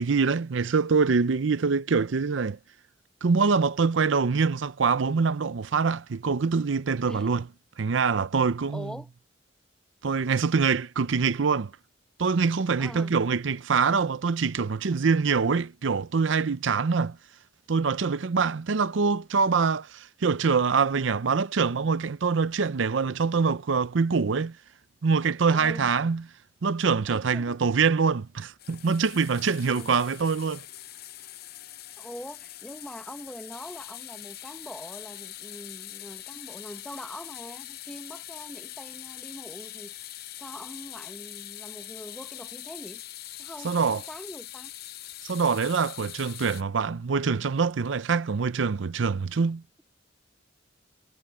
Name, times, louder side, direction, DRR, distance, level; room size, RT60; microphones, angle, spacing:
voice 1, 0.0-2.6 3.2-7.4 7.8-8.9 10.0-11.7 12.2-17.2 17.7-24.6 25.0-26.2 26.6-30.7 43.6-44.0 45.2-49.6, right 5 dB, 80° right, 0.6 m, -24 dB
voice 2, 8.7-9.1 12.8-13.1 25.5-25.9 27.1-27.6 29.8-29.9 32.0-43.0 43.4-44.7, equal, 5° left, 1.5 m, -43 dB
sound 1, 28.6-46.6, left 13 dB, 55° left, 0.6 m, -43 dB
head